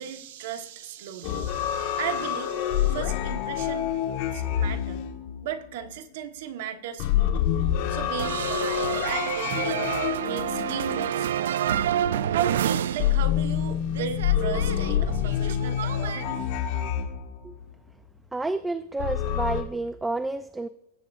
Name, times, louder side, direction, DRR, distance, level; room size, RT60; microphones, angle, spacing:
voice 1, 0.0-4.0 4.3-5.0 5.4-7.4 7.9-9.9 10.2-11.7 12.3-16.4, right 9 dB, 65° right, 7 dB, 1.2 m, -36 dB
sound 1, 1.2-5.8 7.0-11.8 13.0-17.6 19.0-19.6, left 10 dB, 45° left, 1.5 m, -27 dB
sound 2, 8.2-13.6 13.9-16.2, right 10 dB, 85° right, 0.4 m, -29 dB
voice 2, 18.3-20.7, right 2 dB, 5° right, 12 dB, 0.3 m, -30 dB
19.0 x 8.4 x 2.5 m, 0.83 s
supercardioid pair, 145°, 0 cm